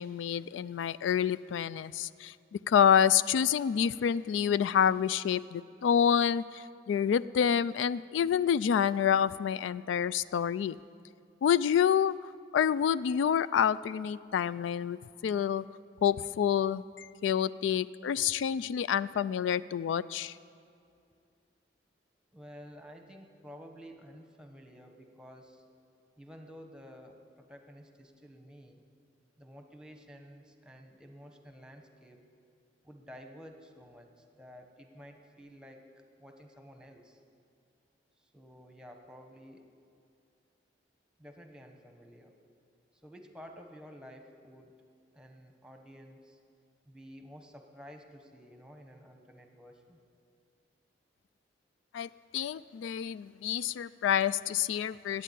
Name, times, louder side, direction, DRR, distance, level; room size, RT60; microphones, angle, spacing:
voice 1, 0.0-10.8 11.4-12.2 12.5-15.6 16.0-20.4 51.9-55.2, left 8 dB, 90° left, 18 dB, 0.3 m, -28 dB
voice 2, 22.3-25.6 26.2-28.8 29.4-32.2 32.8-37.2 38.2-39.7 41.2-42.3 43.0-44.8 45.1-46.4 46.8-50.0, equal, 5° right, 4 dB, 1.0 m, -51 dB
13.0 x 9.1 x 8.4 m, 2.4 s
head